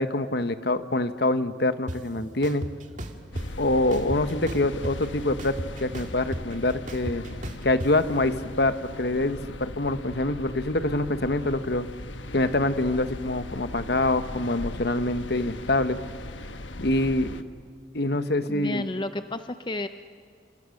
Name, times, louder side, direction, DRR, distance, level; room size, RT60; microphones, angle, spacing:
voice 1, 0.0-2.7 3.6-7.3 7.6-11.9 12.3-16.0 16.8-17.3 17.9-18.8, left 2 dB, 60° left, 11 dB, 1.2 m, -25 dB
sound 1, 1.9-2.0 2.4-3.5 3.9-5.1 5.4-7.9, equal, 40° right, 2.0 m, -34 dB
sound 2, 3.3-17.4, left 2 dB, 85° left, 1.3 m, -39 dB
voice 2, 18.5-19.9, left 2 dB, 25° left, 10 dB, 0.6 m, -31 dB
29.5 x 27.5 x 6.5 m, 2.2 s
head